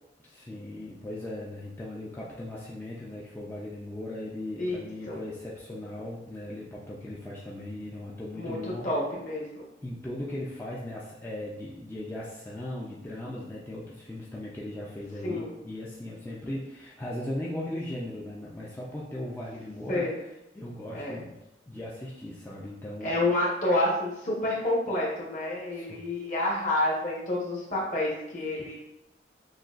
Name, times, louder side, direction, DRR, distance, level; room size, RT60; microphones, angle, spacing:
voice 1, 0.3-8.9 9.8-20.1 20.5-21.4 21.7-23.2 25.7-26.0 28.6-28.7, left 1 dB, 10° left, -6 dB, 0.4 m, -38 dB
voice 2, 4.6-5.2 8.3-9.6 15.2-15.6 19.9-20.2 20.9-21.2 23.0-28.7, left 1 dB, 45° left, -5 dB, 1.1 m, -29 dB
6.3 x 2.3 x 2.4 m, 0.91 s
head